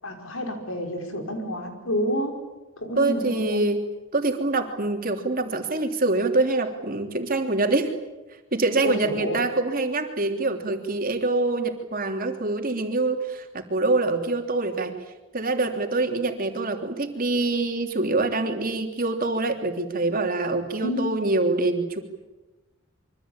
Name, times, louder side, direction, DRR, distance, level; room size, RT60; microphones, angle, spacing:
voice 1, 0.0-2.4 2.8-3.6 8.8-9.4 20.8-21.0, equal, 80° left, 4 dB, 5.6 m, -29 dB
voice 2, 2.9-3.8 4.1-7.9 8.5-14.9 15.3-22.0, right 2 dB, 40° right, 4 dB, 3.2 m, -25 dB
26.0 x 24.5 x 8.9 m, 1.1 s
head